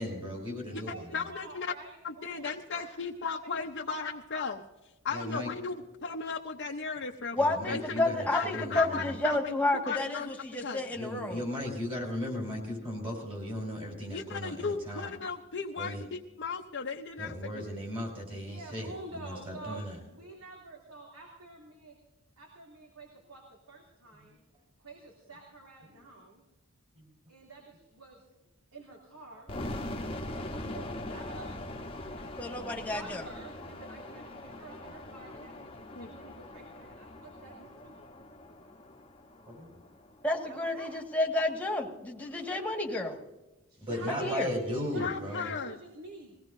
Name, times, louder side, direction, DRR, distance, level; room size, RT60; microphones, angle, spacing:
voice 1, 0.0-0.9 5.1-5.5 7.4-9.1 10.9-15.1 15.8-16.0 17.2-18.9 19.2-19.9 27.0-27.1 39.5-39.7 43.8-45.5, left 1 dB, 25° right, 1 dB, 4.7 m, -36 dB
voice 2, 0.6-3.5 3.8-4.1 5.1-5.5 18.4-22.0 22.4-24.4 24.8-26.4 27.3-28.2 28.7-31.5 32.1-32.3 32.9-35.7 36.0-38.0 40.5-41.0 42.2-42.4 43.7-46.4, right 3 dB, 85° right, -2 dB, 2.9 m, -48 dB
voice 3, 1.1-1.7 2.0-4.6 5.0-7.4 7.7-7.8 8.3-10.8 14.1-17.3 35.9-36.1 44.9-45.8, left 5 dB, 55° left, 1 dB, 0.8 m, -36 dB
voice 4, 7.3-11.4 32.4-33.2 40.2-43.2 44.2-44.5, left 2 dB, 5° left, 0 dB, 1.7 m, -31 dB
sound 1, 29.5-40.4, left 1 dB, 25° left, 1.0 m, -42 dB
21.5 x 17.0 x 2.7 m, 1.1 s
head